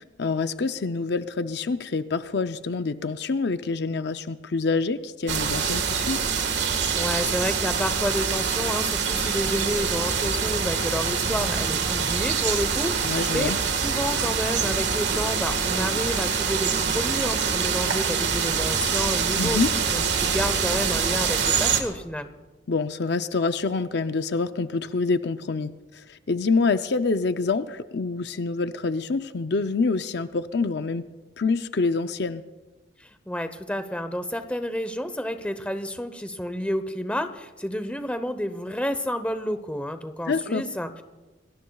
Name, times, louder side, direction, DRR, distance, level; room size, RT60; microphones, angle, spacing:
voice 1, 0.0-6.2 13.0-13.6 19.4-19.7 22.7-31.1 31.4-32.4 40.3-40.6, left 4 dB, 60° left, 10 dB, 0.5 m, -26 dB
sound 1, 5.3-21.8, right 6 dB, 65° right, 1.6 m, -25 dB
voice 2, 6.9-13.5 13.8-19.6 19.9-22.3 33.0-41.0, equal, 5° left, 9 dB, 0.8 m, -30 dB
27.5 x 19.5 x 2.3 m, 1.2 s
head